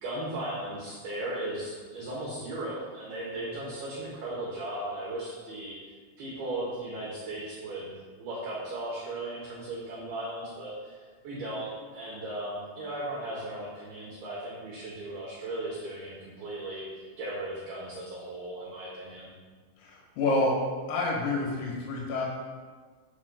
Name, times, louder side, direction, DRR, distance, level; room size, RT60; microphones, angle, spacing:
voice 1, 0.0-5.8 6.2-19.3, right 1 dB, 75° right, -6 dB, 2.3 m, -37 dB
voice 2, 19.8-20.6 20.9-22.3, left 2 dB, 80° left, -3 dB, 4.0 m, -28 dB
8.5 x 6.3 x 2.3 m, 1.5 s
omnidirectional pair, 5.9 m